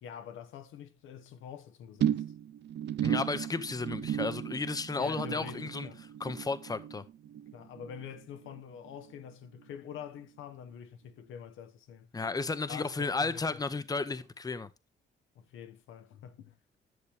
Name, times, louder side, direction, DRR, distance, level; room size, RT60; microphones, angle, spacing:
voice 1, 0.0-2.2 5.0-6.0 7.5-12.1 12.7-13.4 15.4-16.6, left 8 dB, 85° left, 1.1 m, -46 dB
sound 1, 2.0-8.6 8.9-9.3 9.6-9.7, right 10 dB, 60° right, 0.6 m, -35 dB
voice 2, 3.0-5.9 6.2-7.0 12.1-14.7, left 4 dB, 20° left, 0.8 m, -33 dB
11.0 x 6.8 x 3.4 m
cardioid pair, 90°, 20 cm